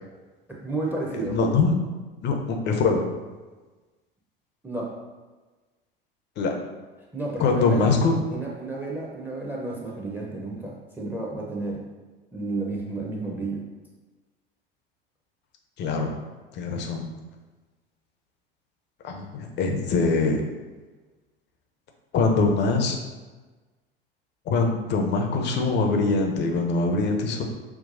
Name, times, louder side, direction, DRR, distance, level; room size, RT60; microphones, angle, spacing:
voice 1, 0.5-1.4 4.6-4.9 7.1-7.9 8.3-11.8 12.3-13.6, right 2 dB, 5° right, -2 dB, 0.8 m, -31 dB
voice 2, 1.3-1.8 2.2-3.0 6.4-6.5 7.4-8.2 15.8-16.1 16.5-17.0 19.0-20.4 22.1-23.0 24.5-27.4, left 4 dB, 35° left, 3 dB, 0.7 m, -23 dB
5.8 x 2.3 x 2.6 m, 1.3 s
figure-of-eight pair, 75°, 29 cm